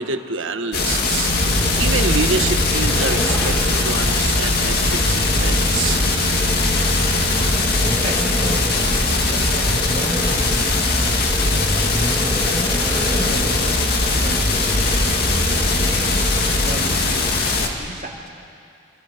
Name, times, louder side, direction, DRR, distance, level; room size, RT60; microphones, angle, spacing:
voice 1, 0.0-1.3 1.8-3.5 3.8-6.0, right 4 dB, 80° right, 7 dB, 1.3 m, -26 dB
sound 1, 0.7-17.7, left 3 dB, 50° left, 2.2 m, -21 dB
sound 2, 1.1-10.1, right 1 dB, 80° left, 2.0 m, -34 dB
Vehicle, 1.3-17.2, equal, 10° left, 1.7 m, -24 dB
voice 2, 7.2-12.1 12.6-15.3 16.6-18.3, right 1 dB, 40° right, -1 dB, 3.0 m, -36 dB
28.0 x 26.5 x 5.2 m, 2.4 s
head